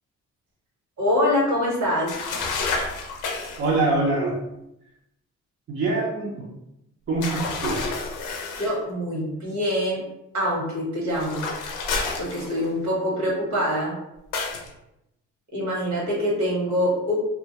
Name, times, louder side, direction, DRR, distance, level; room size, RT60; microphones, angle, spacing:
voice 1, 1.0-2.2 8.6-10.0 10.3-11.4 12.1-13.9 15.5-17.1, equal, 65° right, -4 dB, 1.2 m, -24 dB
sound 1, 2.1-3.7 7.2-8.8 11.1-12.9 14.3-14.7, left 4 dB, 85° left, 0.5 m, -30 dB
voice 2, 3.6-4.4 5.7-6.4 7.1-7.8, right 2 dB, 40° right, -5 dB, 0.6 m, -24 dB
2.3 x 2.0 x 2.8 m, 0.86 s
cardioid pair, 90°, 30 cm